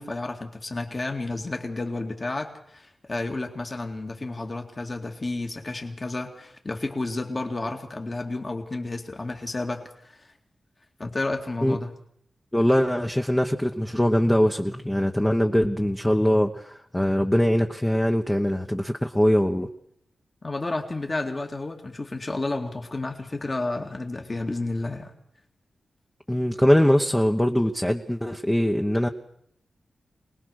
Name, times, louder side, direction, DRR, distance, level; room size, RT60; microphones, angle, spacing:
voice 1, 0.0-10.3 11.0-11.9 20.4-25.1, left 2 dB, 30° left, 3 dB, 2.2 m, -31 dB
voice 2, 12.5-19.7 26.3-29.1, equal, 10° left, 3 dB, 1.2 m, -22 dB
25.5 x 19.5 x 6.6 m, 0.70 s
wide cardioid pair, 100°, 0 cm